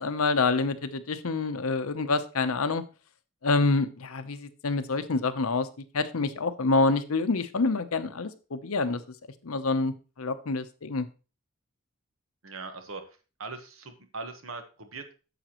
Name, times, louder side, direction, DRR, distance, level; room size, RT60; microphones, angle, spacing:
voice 1, 0.0-2.8 3.4-5.7 5.9-9.0 9.4-11.1, left 3 dB, 90° left, 11 dB, 0.8 m, -27 dB
voice 2, 12.4-13.0 13.4-15.1, right 3 dB, 75° right, 7 dB, 1.3 m, -40 dB
9.1 x 7.1 x 3.0 m, 0.33 s
head